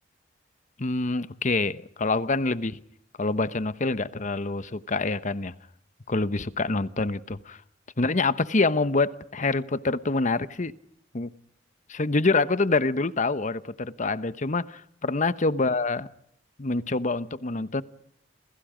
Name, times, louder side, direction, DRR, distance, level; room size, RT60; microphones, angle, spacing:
voice 1, 0.8-2.8 3.2-5.5 6.1-7.6 8.0-10.7 11.1-11.3 11.9-16.1 16.6-17.8, left 3 dB, 40° left, 1.0 m, -26 dB
28.5 x 28.0 x 5.1 m
head